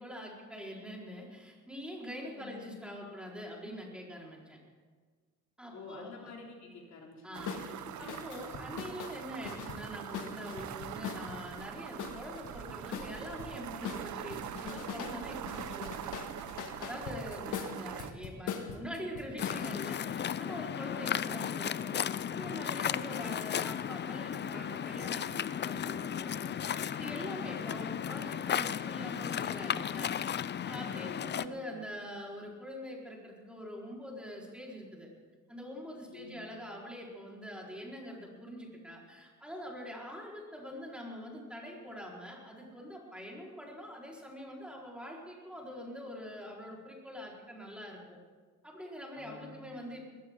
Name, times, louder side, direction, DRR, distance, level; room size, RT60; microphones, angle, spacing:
voice 1, 0.0-4.6 5.6-6.1 7.2-16.1 16.8-30.2 30.6-35.1 35.5-48.2 48.6-50.0, equal, 5° right, -3 dB, 4.6 m, -44 dB
voice 2, 2.3-2.7 5.7-8.5 8.9-9.0 17.3-17.8 20.8-21.4 30.9-31.7 36.1-36.6 49.1-49.8, left 3 dB, 65° left, -1 dB, 3.4 m, -50 dB
sound 1, 7.3-18.1, right 11 dB, 75° right, 0.8 m, -43 dB
sound 2, 7.5-7.7 8.1-11.4 12.0-13.5 13.8-15.2 15.5-19.6, left 7 dB, 85° left, 1.6 m, -41 dB
Waves surf, 19.4-31.5, left 9 dB, 35° left, 0.5 m, -35 dB
20.0 x 16.0 x 3.9 m, 1.5 s
cardioid pair, 90°, 30 cm